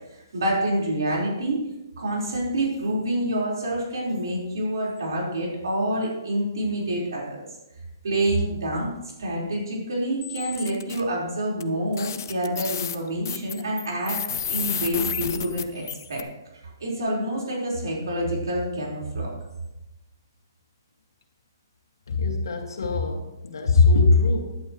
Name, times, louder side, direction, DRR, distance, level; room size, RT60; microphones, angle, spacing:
voice 1, 0.3-1.6 2.0-7.5 8.0-8.9 9.2-14.2 14.5-15.8 16.1-16.2 16.8-19.3, right 1 dB, 80° right, -4 dB, 4.5 m, -27 dB
sound 1, 10.2-11.0 11.6-11.7 11.9-16.2, left 8 dB, 50° left, 0.8 m, -31 dB
voice 2, 22.1-24.6, left 3 dB, 85° left, 2 dB, 2.0 m, -21 dB
14.5 x 11.0 x 3.2 m, 0.96 s
hypercardioid pair, 170°, 2 cm